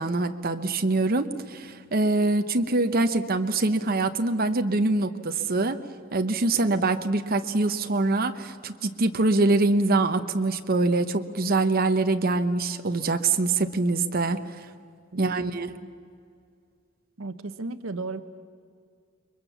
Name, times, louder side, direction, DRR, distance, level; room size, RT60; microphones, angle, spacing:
voice 1, 0.0-5.8 6.1-14.7 15.2-15.7, right 2 dB, 45° right, 7 dB, 1.0 m, -24 dB
voice 2, 15.1-15.6 17.2-18.2, right 3 dB, 70° right, 11 dB, 1.0 m, -35 dB
29.0 x 22.5 x 7.1 m, 2.2 s
head